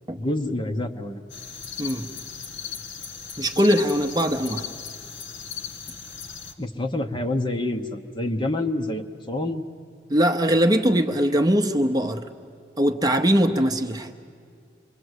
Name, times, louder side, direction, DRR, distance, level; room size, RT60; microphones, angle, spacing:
voice 1, 0.1-1.2 6.6-9.6, left 1 dB, 25° left, 4 dB, 1.0 m, -27 dB
sound 1, 1.3-6.5, left 7 dB, 85° left, 1.9 m, -37 dB
voice 2, 1.8-2.1 3.4-4.7 10.1-12.3 12.8-14.1, equal, 20° right, 6 dB, 0.8 m, -21 dB
27.0 x 22.0 x 8.1 m, 2.2 s
head